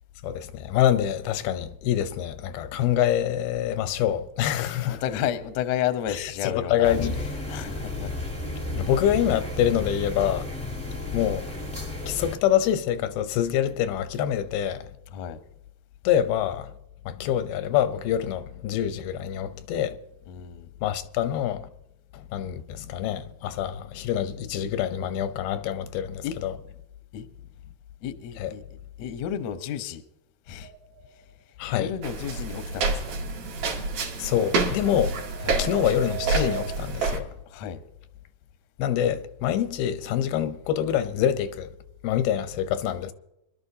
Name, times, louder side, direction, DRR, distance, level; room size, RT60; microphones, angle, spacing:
voice 1, 0.2-5.0 6.1-7.2 8.7-10.5 11.1-11.5 12.1-14.9 16.0-16.7 17.1-20.0 20.8-21.7 22.1-26.5 28.4-28.5 31.6-31.9 34.2-35.1 35.6-37.3 38.8-41.7 42.0-43.1, left 10 dB, 85° left, 2.7 m, -26 dB
voice 2, 4.8-7.0 7.5-8.1 15.1-15.4 20.3-20.7 26.2-26.4 27.1-27.3 28.0-28.6 29.0-30.0 30.5-30.7 31.1-31.2 31.7-33.2 35.4-35.6 37.5-37.8, left 10 dB, 70° left, 1.7 m, -32 dB
sound 1, 6.8-12.4, left 2 dB, 5° left, 0.7 m, -33 dB
sound 2, 30.6-31.3 34.6-36.8, right 13 dB, 85° right, 3.4 m, -38 dB
sound 3, 32.0-37.2, right 3 dB, 65° right, 3.5 m, -28 dB
25.0 x 12.0 x 2.8 m
omnidirectional pair, 4.3 m